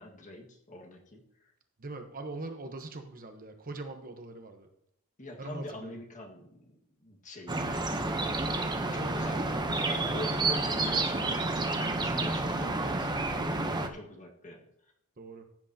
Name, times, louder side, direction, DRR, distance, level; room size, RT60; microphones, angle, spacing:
voice 1, 0.0-1.5 5.2-8.3 8.9-14.7, left 1 dB, 35° left, 1 dB, 1.7 m, -44 dB
voice 2, 1.8-4.7 5.4-6.0 8.2-8.4 15.2-15.5, right 2 dB, 40° right, 6 dB, 1.0 m, -42 dB
sound 1, 7.5-13.9, right 2 dB, 20° right, 0.8 m, -30 dB
15.5 x 8.2 x 2.8 m, 0.75 s
head